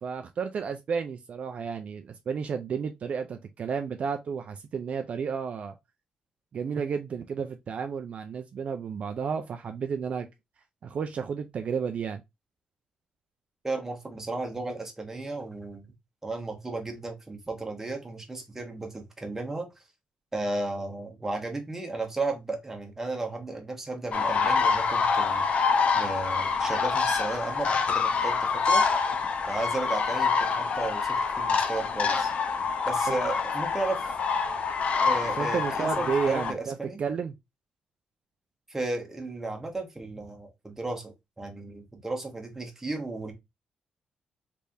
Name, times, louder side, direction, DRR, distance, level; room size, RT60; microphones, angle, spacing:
voice 1, 0.0-5.8 6.5-10.3 10.8-12.2 33.1-33.2 35.4-37.3, right 6 dB, 50° right, 0.4 m, -32 dB
voice 2, 13.6-15.9 16.2-19.7 20.3-25.6 26.0-29.1 29.5-32.3 32.8-34.1 35.0-37.0 38.7-43.3, right 2 dB, 15° right, 1.2 m, -34 dB
sound 1, 24.1-36.5, left 5 dB, 50° left, 0.6 m, -26 dB
3.4 x 3.3 x 2.6 m
cardioid pair, 125°, 3 cm